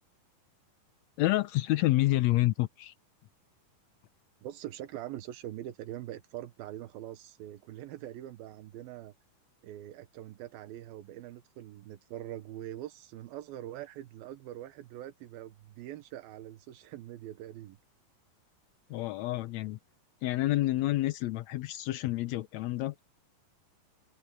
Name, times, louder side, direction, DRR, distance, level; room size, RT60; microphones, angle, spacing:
voice 1, 1.2-2.9 18.9-19.8 20.2-22.9, left 16 dB, 90° left, 1.5 m, -28 dB
voice 2, 4.4-9.1 9.6-17.8, right 13 dB, 85° right, 2.9 m, -43 dB
omnidirectional pair, 4.1 m